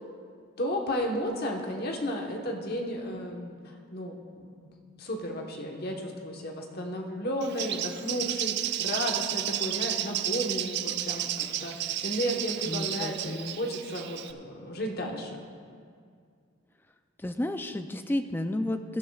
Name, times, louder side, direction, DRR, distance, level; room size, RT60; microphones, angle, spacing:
voice 1, 0.6-3.5 3.9-4.7 5.0-15.4, equal, 50° left, 1 dB, 1.2 m, -33 dB
Bird, 7.4-14.3, right 11 dB, 55° right, 0.4 m, -32 dB
voice 2, 12.7-13.6 17.2-19.0, left 1 dB, 10° left, 8 dB, 0.4 m, -32 dB
18.5 x 11.5 x 2.4 m, 2.2 s
head